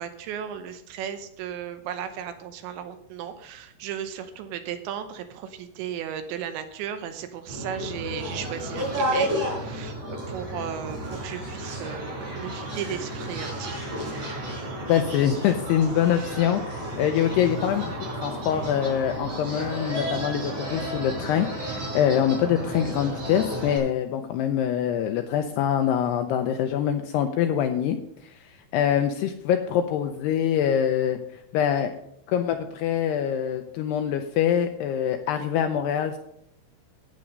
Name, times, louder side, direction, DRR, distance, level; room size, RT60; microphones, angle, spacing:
voice 1, 0.0-14.3, right 9 dB, 80° right, 9 dB, 3.1 m, -35 dB
sound 1, 7.5-23.8, right 1 dB, 40° right, 6.0 m, -32 dB
voice 2, 14.9-28.0 28.2-28.3 28.7-31.2 31.5-31.9 32.3-36.2, left 9 dB, 85° left, 6 dB, 2.4 m, -24 dB
12.0 x 9.0 x 5.3 m, 0.75 s
omnidirectional pair, 5.4 m